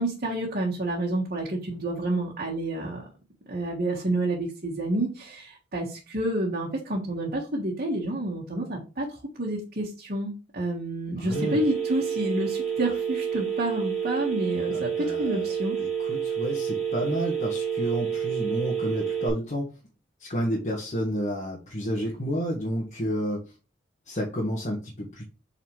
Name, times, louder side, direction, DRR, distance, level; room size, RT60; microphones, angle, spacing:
voice 1, 0.0-3.0 3.5-9.1 9.4-15.8, right 1 dB, 50° right, -3 dB, 1.6 m, -29 dB
voice 2, 11.1-11.6 14.7-15.5 15.8-19.7 20.2-23.4 24.1-25.2, equal, 40° left, -2 dB, 1.6 m, -30 dB
Telephone, 11.3-19.3, right 7 dB, ahead, 3.8 m, -29 dB
8.2 x 4.1 x 3.2 m, 0.32 s
head